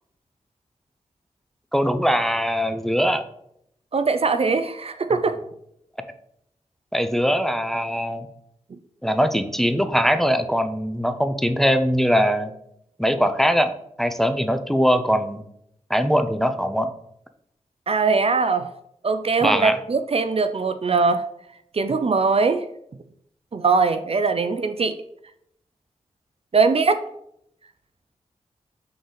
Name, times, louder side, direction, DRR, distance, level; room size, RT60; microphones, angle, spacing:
voice 1, 1.7-3.2 6.9-8.3 9.0-12.5 13.0-13.7 14.0-15.4 15.9-16.9 19.4-19.8, equal, ahead, 9 dB, 0.6 m, -21 dB
voice 2, 3.9-5.4 17.9-18.7 19.0-21.2 21.7-22.6 23.5-24.9 26.5-27.0, right 4 dB, 45° right, 10 dB, 0.5 m, -21 dB
6.7 x 3.9 x 3.9 m, 0.74 s
cardioid pair, 45°, 13 cm